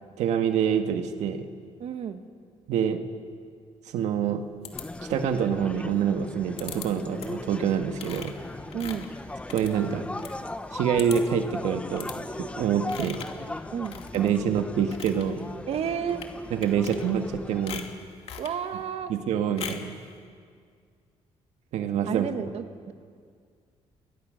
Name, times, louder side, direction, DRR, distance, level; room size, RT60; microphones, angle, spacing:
voice 1, 0.2-1.5 2.7-3.0 3.9-4.4 5.1-8.3 9.5-10.1 10.7-13.2 14.1-15.5 16.5-17.9 19.1-20.0 21.7-22.3, right 8 dB, 85° right, 6 dB, 1.6 m, -26 dB
voice 2, 1.8-2.2 8.7-9.1 13.7-13.9 15.7-16.3 18.4-19.1 22.1-22.9, right 8 dB, 60° right, 8 dB, 1.7 m, -31 dB
sound 1, 4.6-5.3 6.6-6.9 7.2-7.5 8.0-10.4 10.7-10.8 11.0-11.4 12.0-12.2 12.9-13.4 13.8-14.4 14.8-15.2 16.1-16.3 16.6-17.3 17.7-18.6 19.6-19.9, left 7 dB, 60° left, 2.5 m, -40 dB
sound 2, 4.7-17.7, left 2 dB, 10° left, 1.0 m, -38 dB
29.0 x 23.0 x 6.6 m, 2.1 s
cardioid pair, 110°, 12 cm